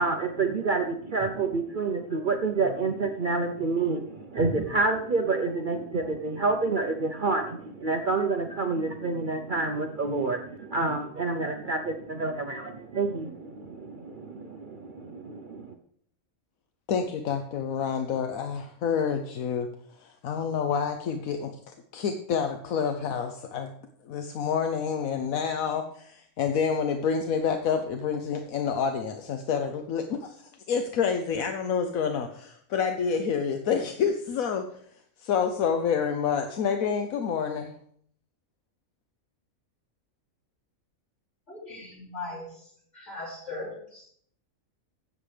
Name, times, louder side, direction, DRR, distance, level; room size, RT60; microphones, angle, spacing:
voice 1, 0.0-15.7, right 3 dB, 50° right, 5 dB, 0.7 m, -28 dB
voice 2, 16.9-23.7 24.0-37.7, left 6 dB, 80° left, 6 dB, 1.2 m, -28 dB
voice 3, 41.5-42.7 42.9-44.0, left 2 dB, 60° left, -6 dB, 5.4 m, -39 dB
16.0 x 7.3 x 3.3 m, 0.62 s
omnidirectional pair, 1.4 m